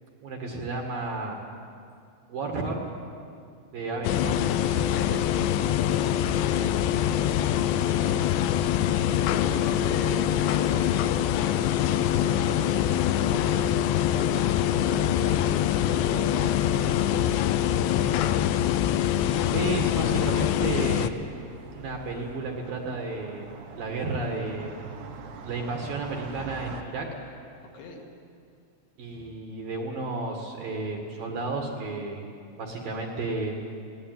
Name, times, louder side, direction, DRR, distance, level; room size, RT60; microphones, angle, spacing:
voice 1, 0.2-1.4 2.3-2.8 3.7-5.3 19.5-21.4 21.7-23.5 23.7-24.7 25.4-27.1 29.0-32.3 32.6-33.5, right 3 dB, 60° right, 2 dB, 2.9 m, -32 dB
sound 1, 4.0-21.1, left 11 dB, 80° left, 2.6 m, -24 dB
voice 2, 5.7-8.2 8.9-18.1 27.7-28.0, left 3 dB, 60° left, 0 dB, 3.8 m, -39 dB
sound 2, 18.5-26.8, right 5 dB, 75° right, 1.8 m, -44 dB
21.0 x 17.5 x 9.3 m, 2.4 s
omnidirectional pair, 5.6 m